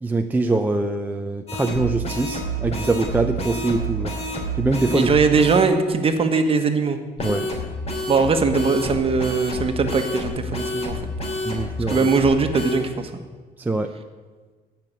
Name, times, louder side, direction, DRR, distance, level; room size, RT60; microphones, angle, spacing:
voice 1, 0.0-4.1 4.6-5.1 7.2-7.5 11.4-12.1 13.6-13.9, right 2 dB, 10° right, 5 dB, 0.6 m, -23 dB
sound 1, 1.5-5.7 7.2-12.8, right 1 dB, 40° left, 3.0 m, -29 dB
voice 2, 4.9-7.0 8.1-11.0 11.9-13.2, right 4 dB, 35° right, 7 dB, 1.4 m, -20 dB
16.5 x 5.9 x 8.2 m, 1.4 s
cardioid pair, 110°, 17 cm